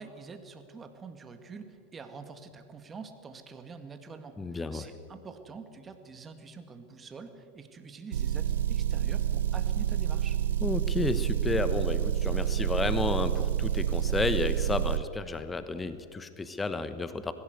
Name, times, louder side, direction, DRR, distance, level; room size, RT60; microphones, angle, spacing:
voice 1, 0.0-10.4, right 5 dB, 25° right, 8 dB, 2.1 m, -46 dB
voice 2, 4.4-4.9 10.6-17.3, left 3 dB, 15° left, 11 dB, 1.1 m, -32 dB
Motor vehicle (road) / Engine, 8.1-15.0, right 10 dB, 85° right, 0.7 m, -28 dB
19.5 x 16.5 x 8.1 m, 2.3 s
hypercardioid pair, 110°, 0 cm